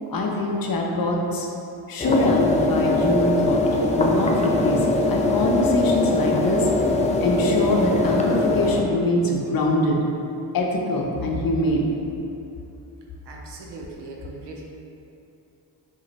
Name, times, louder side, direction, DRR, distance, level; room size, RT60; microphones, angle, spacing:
voice 1, 0.1-1.5 1.9-6.7 7.2-10.0 10.5-11.9, left 1 dB, 55° left, -1 dB, 0.6 m, -23 dB
sound 1, 2.0-8.8, left 2 dB, 20° left, 0.3 m, -22 dB
voice 2, 13.3-14.6, right 3 dB, 65° right, -1 dB, 0.6 m, -39 dB
2.9 x 2.4 x 4.0 m, 2.8 s
supercardioid pair, 50°, 44 cm